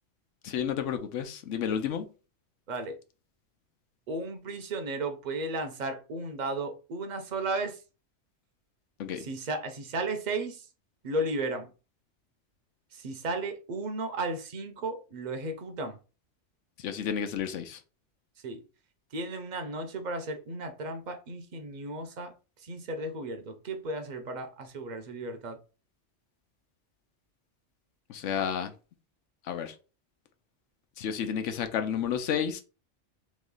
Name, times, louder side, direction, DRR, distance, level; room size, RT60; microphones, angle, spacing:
voice 1, 0.4-2.1 9.0-9.2 16.8-17.8 28.1-28.7 29.5-29.7 31.0-32.6, left 8 dB, 90° left, 1.0 m, -31 dB
voice 2, 4.1-7.8 9.2-10.7 11.0-11.7 12.9-16.0 18.4-18.6 19.1-22.3 22.6-25.6, right 2 dB, 45° right, 0.7 m, -34 dB
3.1 x 3.1 x 3.7 m
omnidirectional pair, 1.2 m